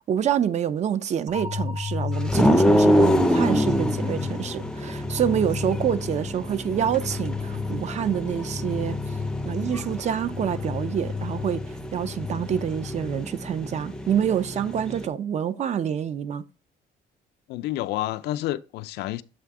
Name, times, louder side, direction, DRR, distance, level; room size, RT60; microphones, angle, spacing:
voice 1, 0.1-9.2 9.4-16.4, right 9 dB, 40° right, 0.5 m, -27 dB
sound 1, 1.3-13.2, left 5 dB, 70° right, 2.5 m, -34 dB
sound 2, 2.3-15.1, equal, 5° left, 0.5 m, -26 dB
voice 2, 17.5-19.2, left 15 dB, 80° left, 0.4 m, -29 dB
7.5 x 3.4 x 4.7 m
cardioid pair, 110°, 17 cm